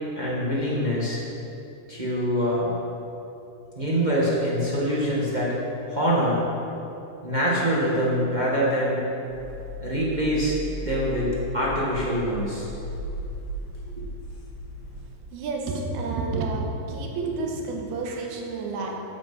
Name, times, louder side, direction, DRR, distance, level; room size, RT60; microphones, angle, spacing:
voice 1, 0.2-1.2 1.9-2.7 3.7-5.5 5.9-6.4 7.2-9.0 9.8-12.7, equal, 25° right, -6 dB, 0.9 m, -24 dB
sound 1, 9.3-15.0, equal, 60° left, 4.6 m, -36 dB
voice 2, 15.3-19.0, right 3 dB, 85° right, 1 dB, 3.2 m, -30 dB
14.5 x 7.7 x 5.8 m, 2.9 s
omnidirectional pair, 4.3 m